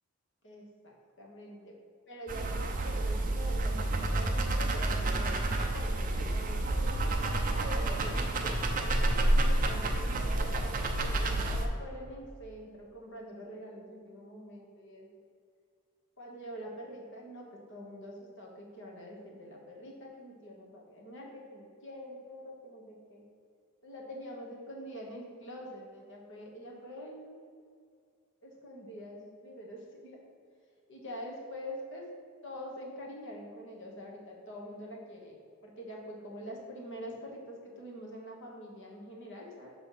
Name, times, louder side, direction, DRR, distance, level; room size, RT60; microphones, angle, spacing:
voice 1, 0.4-1.8 2.1-6.9 7.5-15.2 16.2-23.3 23.8-27.4 28.4-30.2 30.9-32.1 32.4-35.4 35.6-39.7, equal, 55° left, -1 dB, 1.3 m, -45 dB
sound 1, 2.3-11.7, right 1 dB, 35° right, 0.5 m, -29 dB
6.8 x 3.4 x 5.5 m, 2.2 s
head